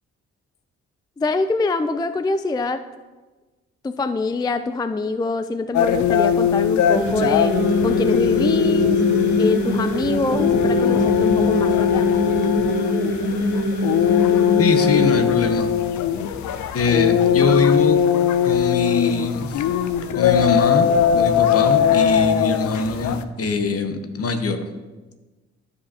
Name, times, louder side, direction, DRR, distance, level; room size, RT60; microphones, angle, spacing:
voice 1, 1.2-2.8 3.8-7.6 7.8-9.0 9.4-12.1, left 3 dB, 15° left, 11 dB, 0.3 m, -24 dB
sound 1, 5.7-23.2, left 9 dB, 65° left, 0.6 m, -20 dB
sound 2, 6.9-15.2, equal, 85° left, 1.3 m, -23 dB
voice 2, 14.6-15.7 16.7-18.0 18.4-19.6 20.1-24.6, left 4 dB, 50° left, 7 dB, 1.0 m, -23 dB
12.5 x 5.2 x 2.8 m, 1.2 s
supercardioid pair, 45°, 30 cm